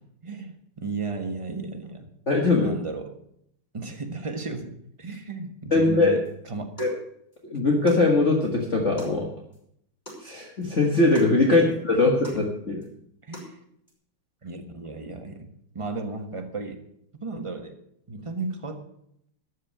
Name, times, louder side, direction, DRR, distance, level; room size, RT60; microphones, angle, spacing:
voice 1, 0.2-2.1 2.5-3.2 3.7-6.2 6.5-6.7 11.5-11.6 13.2-13.6 14.4-15.5 15.7-16.8 17.2-17.8 18.1-18.8, right 3 dB, 20° right, 5 dB, 0.9 m, -34 dB
voice 2, 2.3-2.7 5.7-6.2 6.8-6.9 7.4-9.3 10.2-12.8, left 2 dB, 35° left, -1 dB, 1.8 m, -21 dB
sound 1, 6.2-6.3 6.8-7.0 7.3-7.4 7.9-8.1 8.4-8.5 9.0-9.2 9.5-9.6 10.1-10.3 10.6-10.7 11.1-11.3 11.7-11.8 12.2-12.4 12.8-12.9 13.3-13.5 13.9-14.0, equal, 20° left, 6.4 m, -43 dB
13.5 x 6.5 x 8.7 m, 0.73 s
omnidirectional pair, 2.4 m